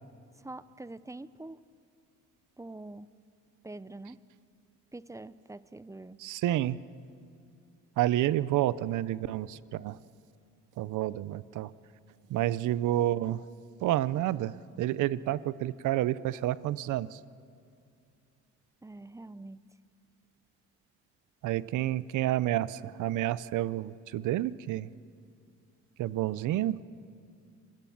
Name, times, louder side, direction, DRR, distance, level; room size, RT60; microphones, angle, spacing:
voice 1, 0.3-1.6 2.6-3.1 3.6-4.2 4.9-6.2 18.8-19.6, right 2 dB, 10° right, 16 dB, 0.6 m, -45 dB
voice 2, 6.2-6.8 8.0-10.0 10.8-11.7 12.3-13.4 13.8-17.2 21.4-24.9 26.0-26.8, right 14 dB, 80° right, 18 dB, 0.7 m, -29 dB
25.0 x 20.0 x 7.2 m, 2.4 s
cardioid pair, 90°, 30 cm